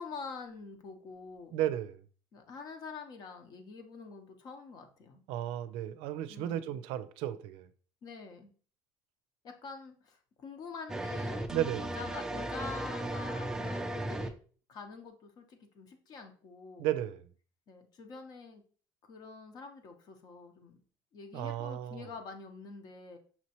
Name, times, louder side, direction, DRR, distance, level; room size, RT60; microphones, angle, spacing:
voice 1, 0.0-1.6 2.3-5.2 6.3-6.8 8.0-8.5 9.4-14.3 14.7-16.9 17.7-18.6 19.1-20.8 21.1-23.2, left 4 dB, 45° left, 0.9 m, -46 dB
voice 2, 1.5-2.0 5.3-7.7 11.5-11.9 16.8-17.2 21.3-22.0, right 12 dB, 75° right, 0.4 m, -34 dB
sound 1, 10.9-14.3, right 1 dB, 5° right, 0.3 m, -36 dB
5.7 x 3.0 x 2.9 m
cardioid pair, 135°, 10 cm